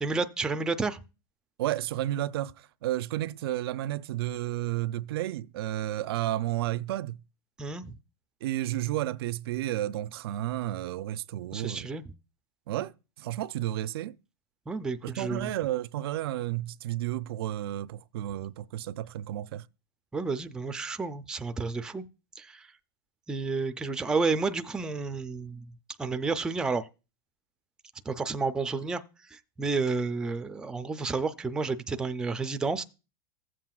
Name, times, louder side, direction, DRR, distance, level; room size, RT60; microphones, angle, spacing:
voice 1, 0.0-1.0 7.6-7.9 11.5-12.0 14.7-15.5 20.1-22.0 22.4-22.6 23.3-25.7 26.0-26.9 28.1-29.0 29.3-32.8, right 4 dB, 5° right, 0.3 m, -31 dB
voice 2, 1.6-7.2 8.4-11.9 12.7-12.9 13.2-14.2 15.0-19.6, right 14 dB, 80° right, 0.4 m, -32 dB
15.0 x 7.4 x 2.3 m
supercardioid pair, 155°, 13 cm